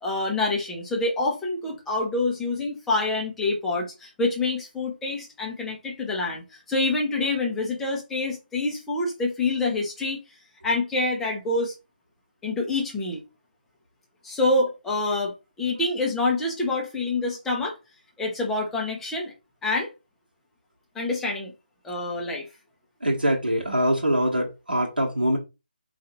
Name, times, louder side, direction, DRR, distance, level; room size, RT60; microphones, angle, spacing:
voice 1, 0.0-10.2 10.6-11.7 12.4-13.2 14.2-17.8 18.2-19.3 19.6-19.9 20.9-21.5 21.8-22.4, left 2 dB, 5° left, 0.6 m, -26 dB
voice 2, 23.0-25.4, equal, 65° right, 1.1 m, -23 dB
4.5 x 2.4 x 2.9 m
figure-of-eight pair, 150°, 5 cm